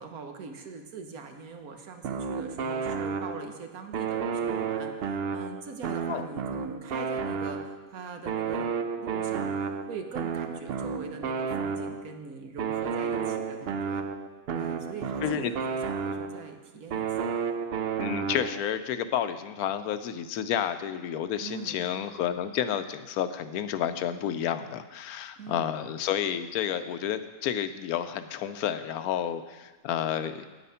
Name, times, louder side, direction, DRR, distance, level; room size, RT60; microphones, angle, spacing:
voice 1, 0.0-8.7 9.0-14.0 14.5-17.4 21.4-21.8 25.4-25.7, right 5 dB, 75° right, 5 dB, 1.5 m, -42 dB
sound 1, 2.0-3.6 3.9-7.9 8.3-12.1 12.6-16.5 16.9-18.7, right 6 dB, 60° right, 0.6 m, -32 dB
voice 2, 18.0-30.4, left 9 dB, 85° left, 11 dB, 1.1 m, -30 dB
9.3 x 9.0 x 5.6 m, 1.3 s
omnidirectional pair, 1.5 m